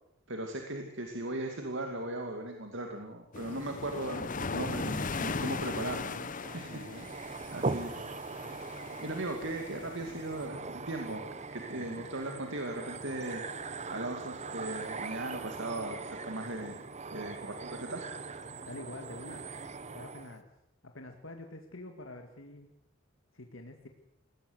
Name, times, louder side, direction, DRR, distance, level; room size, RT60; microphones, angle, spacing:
voice 1, 0.3-7.9 8.5-11.2 11.5-13.5 13.9-16.8 17.1-18.1, right 2 dB, 65° right, 4 dB, 2.4 m, -38 dB
sound 1, 3.3-10.5, left 4 dB, 40° left, 0.9 m, -38 dB
sound 2, 6.4-20.4, right 3 dB, 35° right, 1.1 m, -41 dB
voice 2, 6.7-7.1 11.8-12.0 18.6-19.5 19.9-20.5 20.8-22.7 23.3-23.9, left 2 dB, 75° left, 4 dB, 2.1 m, -46 dB
21.0 x 17.5 x 8.1 m, 0.82 s
head